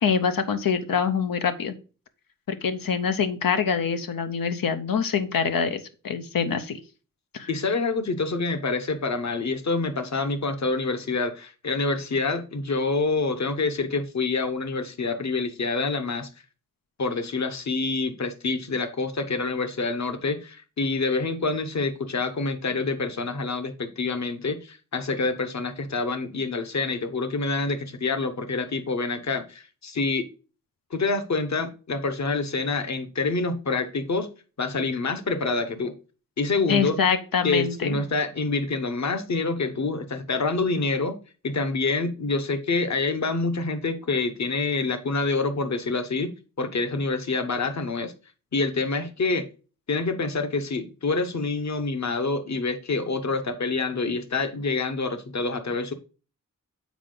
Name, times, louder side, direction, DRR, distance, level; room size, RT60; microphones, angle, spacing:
voice 1, 0.0-1.7 2.5-6.8 7.3-7.5 36.7-38.0, left 6 dB, 90° left, 0.8 m, -25 dB
voice 2, 7.5-16.3 17.0-30.2 30.9-34.3 34.6-35.9 36.4-37.0 37.4-41.2 41.4-48.1 48.5-49.4 49.9-55.9, left 3 dB, 55° left, 1.0 m, -27 dB
7.2 x 4.7 x 3.8 m
wide cardioid pair, 75°, 33 cm